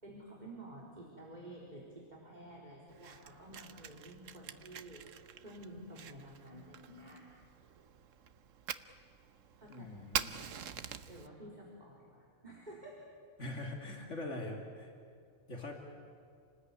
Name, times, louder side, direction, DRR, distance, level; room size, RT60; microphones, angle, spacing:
voice 1, 0.0-5.0 5.4-7.3 9.6-9.8 11.1-13.1, right 1 dB, 35° right, -4 dB, 4.2 m, -51 dB
Fire, 2.9-11.3, right 8 dB, 85° right, 1.3 m, -45 dB
voice 2, 9.7-10.4 13.4-14.9 15.5-15.7, left 2 dB, 70° left, 2 dB, 3.1 m, -42 dB
29.0 x 19.5 x 9.8 m, 2.4 s
omnidirectional pair, 1.3 m